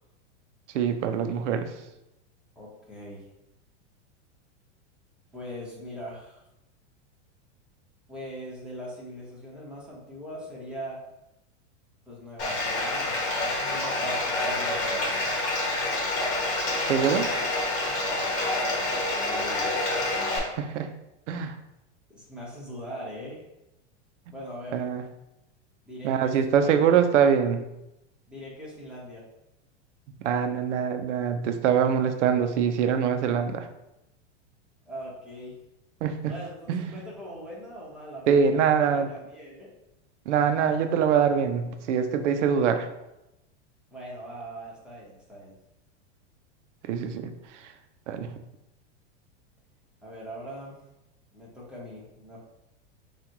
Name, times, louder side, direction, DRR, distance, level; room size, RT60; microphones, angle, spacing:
voice 1, 0.7-1.7 16.8-17.3 20.4-20.9 21.3-21.6 24.7-25.0 26.0-27.7 30.2-33.7 36.0-36.3 36.7-37.0 38.3-39.1 40.3-42.9 46.8-47.7 48.1-48.3, right 7 dB, 80° right, 8 dB, 0.6 m, -24 dB
voice 2, 2.5-3.3 5.3-6.4 8.1-11.0 12.1-15.3 19.2-19.9 22.1-23.4 24.3-24.8 25.8-26.3 26.6-27.0 28.3-29.2 34.8-35.6 36.3-38.3 38.5-39.7 43.9-45.5 50.0-50.8 51.3-52.4, equal, 5° right, -7 dB, 1.2 m, -41 dB
Bathtub (filling or washing), 12.4-20.4, left 2 dB, 40° left, 1.5 m, -27 dB
5.7 x 2.5 x 3.0 m, 0.91 s
supercardioid pair, 135°, 35 cm